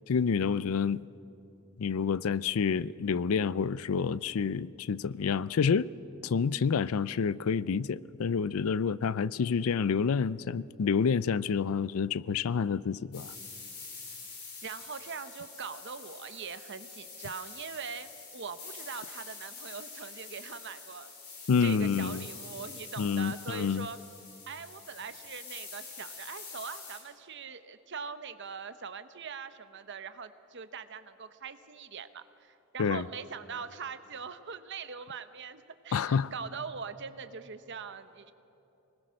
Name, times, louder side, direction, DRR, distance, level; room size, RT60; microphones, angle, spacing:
voice 1, 0.1-1.0 1.8-5.9 6.2-13.3 21.5-22.2 23.0-23.9 32.8-33.0 35.9-36.3, left 6 dB, 75° left, 0.4 m, -28 dB
sound 1, 13.1-27.0, left 4 dB, 50° left, 5.5 m, -46 dB
voice 2, 14.6-21.1 21.6-24.0 24.5-38.3, right 5 dB, 55° right, 0.9 m, -42 dB
25.0 x 20.0 x 6.4 m
head